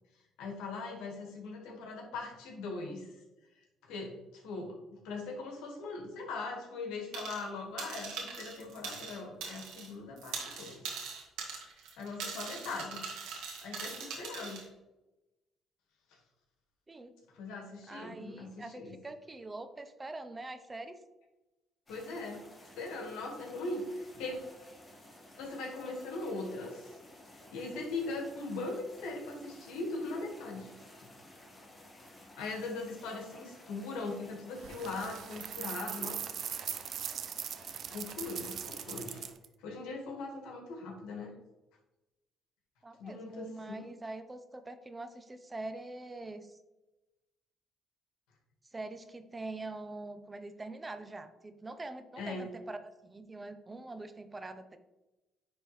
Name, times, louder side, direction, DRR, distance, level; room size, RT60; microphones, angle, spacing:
voice 1, 0.4-3.1 3.8-10.8 12.0-13.1 13.6-14.6 17.3-18.9 21.9-22.4 22.7-23.8 24.1-24.4 25.4-26.8 27.5-30.7 30.9-31.1 32.4-36.2 37.9-39.2 39.6-41.3 43.0-43.8 52.2-52.5, left 3 dB, 85° left, 1 dB, 1.5 m, -40 dB
sound 1, 7.1-7.5 7.8-9.9 10.2-14.6, right 5 dB, 85° right, 1.5 m, -41 dB
voice 2, 17.9-21.0 38.8-39.0 42.8-46.6 48.7-52.8 53.0-54.8, right 2 dB, 20° right, 9 dB, 0.6 m, -44 dB
sound 2, 21.9-39.3, left 1 dB, 20° left, 1.6 m, -55 dB
sound 3, 34.6-39.5, right 9 dB, 60° right, 0.4 m, -40 dB
9.8 x 3.6 x 3.1 m, 1.0 s
cardioid pair, 85°, 0 cm